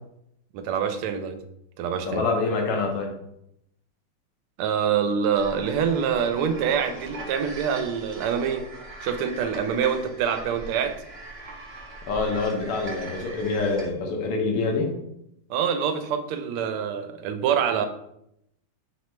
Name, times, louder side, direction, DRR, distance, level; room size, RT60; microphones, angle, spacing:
voice 1, 0.5-1.4 1.8-2.2 4.6-8.7 9.0-11.0 15.5-17.9, right 7 dB, 85° right, 8 dB, 1.5 m, -25 dB
voice 2, 2.1-3.1 12.1-14.9, left 3 dB, 90° left, 1 dB, 1.8 m, -26 dB
sound 1, 5.3-13.9, right 2 dB, 55° right, 0.7 m, -40 dB
5.5 x 3.2 x 3.0 m, 0.78 s
omnidirectional pair, 2.4 m